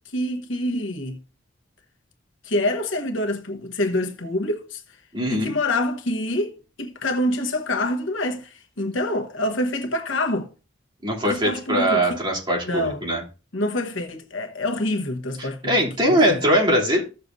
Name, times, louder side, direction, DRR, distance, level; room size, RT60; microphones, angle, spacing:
voice 1, 0.1-1.2 2.4-4.8 5.3-10.5 11.2-12.2 12.6-13.0 13.5-16.4, left 1 dB, 85° left, 1.1 m, -26 dB
voice 2, 5.1-5.5 11.0-13.2 15.6-17.0, equal, 25° right, 3.1 m, -21 dB
15.0 x 6.7 x 2.6 m
head